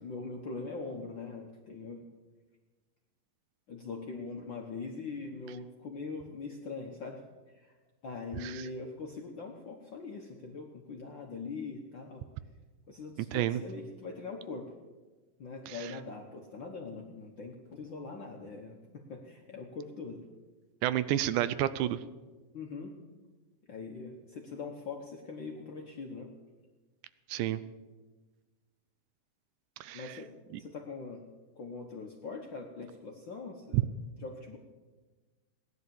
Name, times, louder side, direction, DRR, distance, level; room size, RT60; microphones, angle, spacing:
voice 1, 0.0-2.1 3.7-7.2 7.5-7.7 8.0-12.3 12.9-14.7 15.4-20.2 22.5-22.9 23.7-26.3 29.9-31.2 31.5-33.8 34.2-34.6, left 4 dB, 60° left, 1 dB, 1.3 m, -42 dB
voice 2, 20.8-22.0 27.3-27.6 29.8-30.1 33.7-33.8, right 13 dB, 80° right, 15 dB, 2.0 m, -30 dB
17.0 x 10.5 x 7.1 m, 1.3 s
omnidirectional pair, 3.7 m